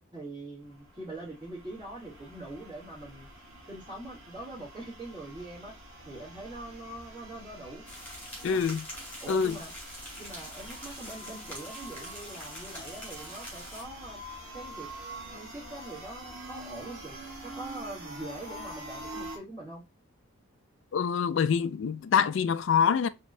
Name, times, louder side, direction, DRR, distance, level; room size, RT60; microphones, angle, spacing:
voice 1, 0.1-3.3 3.7-5.7 6.0-7.8 8.4-8.6 9.2-9.7 10.2-14.2 14.5-14.9 15.3-17.1 17.4-19.8, right 2 dB, 25° right, 2.7 m, -43 dB
sound 1, 0.6-19.4, right 1 dB, 75° right, 1.4 m, -46 dB
sound 2, 7.8-13.8, equal, 5° left, 2.1 m, -44 dB
voice 2, 8.4-8.8 9.3-9.6 20.9-23.1, left 7 dB, 60° left, 0.3 m, -25 dB
5.1 x 3.1 x 2.6 m
head